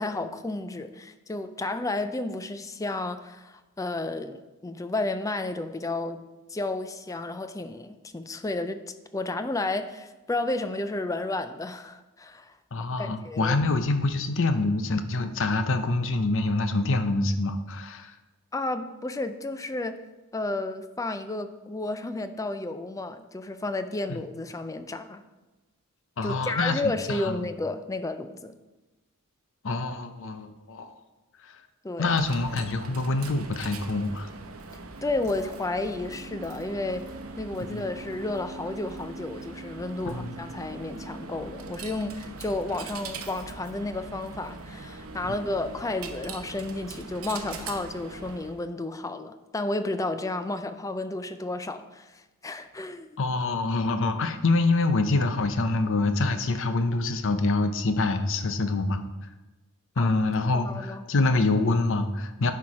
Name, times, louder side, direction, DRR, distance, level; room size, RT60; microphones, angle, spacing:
voice 1, 0.0-8.8 9.1-12.5 13.0-13.5 18.5-20.0 20.3-25.2 26.2-28.5 31.8-32.2 35.0-37.1 37.4-53.1 60.0-60.1 60.5-61.0, left 2 dB, 15° left, 10 dB, 0.4 m, -32 dB
voice 2, 12.7-18.1 26.2-26.8 27.1-27.5 29.6-30.9 32.0-34.3 37.7-37.8 40.1-40.3 53.2-59.0 60.0-62.5, left 2 dB, 60° left, 9 dB, 0.7 m, -26 dB
Coin (dropping), 32.0-48.6, right 3 dB, 75° right, 0.8 m, -41 dB
11.0 x 4.6 x 4.8 m, 1.1 s
head